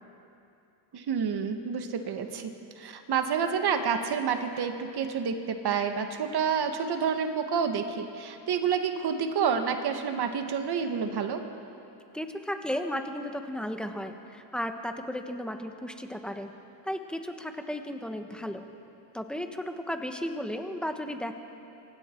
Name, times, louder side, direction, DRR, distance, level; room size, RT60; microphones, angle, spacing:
voice 1, 0.9-2.5 2.8-11.4, right 6 dB, 50° right, 6 dB, 1.6 m, -29 dB
voice 2, 12.1-16.5 16.8-18.7 19.1-21.3, equal, ahead, 5 dB, 1.2 m, -34 dB
27.5 x 24.5 x 4.6 m, 2.7 s
cardioid pair, 145°, 48 cm